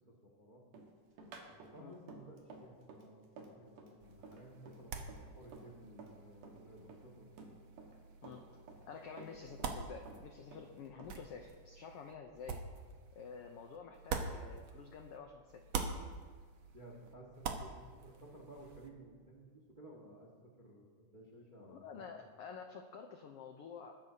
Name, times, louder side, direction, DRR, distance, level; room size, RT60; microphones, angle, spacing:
voice 1, 0.1-0.6 1.7-7.4 16.7-20.3 20.6-22.2, right 1 dB, 30° right, -1 dB, 0.9 m, -56 dB
Run, 0.7-6.2 6.4-8.0 8.2-9.8 10.1-11.5, right 3 dB, 85° right, 3.1 m, -54 dB
sound 1, 4.0-15.2 15.5-18.9, right 5 dB, 70° right, 1.3 m, -46 dB
voice 2, 8.9-12.6 13.1-15.6 21.7-24.0, left 6 dB, 75° left, 4 dB, 1.3 m, -50 dB
21.0 x 11.0 x 2.8 m, 1.5 s
omnidirectional pair, 3.5 m